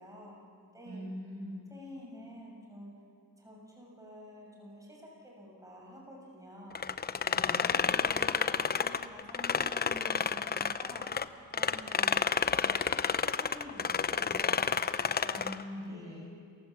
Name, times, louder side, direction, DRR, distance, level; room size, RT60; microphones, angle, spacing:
voice 1, 0.0-1.0 1.7-2.9 3.4-6.8 7.5-11.1 11.5-12.9 13.4-15.4 15.9-16.3, equal, 10° right, -3 dB, 6.9 m, -49 dB
voice 2, 0.9-1.6 7.2-7.8 15.2-16.3, equal, 55° right, -1 dB, 7.4 m, -42 dB
sound 1, 6.7-11.2 11.5-15.6, left 6 dB, 30° left, 0.7 m, -30 dB
28.0 x 16.0 x 7.4 m, 2.2 s
cardioid pair, 90°, 30 cm